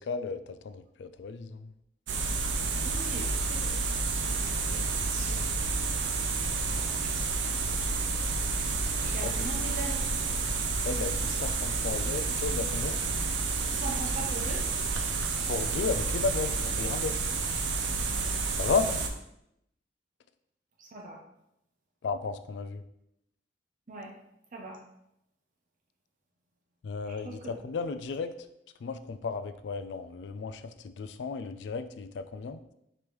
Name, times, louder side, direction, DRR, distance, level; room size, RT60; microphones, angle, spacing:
voice 1, 0.1-1.7 9.2-9.3 10.8-13.0 15.5-17.2 18.5-19.0 22.0-22.8 26.8-28.3 28.8-32.6, left 4 dB, 70° left, 11 dB, 0.3 m, -34 dB
sound 1, 2.1-19.1, right 4 dB, 85° right, 0.5 m, -30 dB
voice 2, 2.8-3.7 4.0-5.4 6.7-7.5 9.0-10.3 13.7-14.6 20.8-21.2 23.9-24.1 24.5-24.8 27.1-27.6, right 2 dB, 45° right, 0 dB, 0.7 m, -42 dB
5.1 x 3.0 x 3.1 m, 0.80 s
head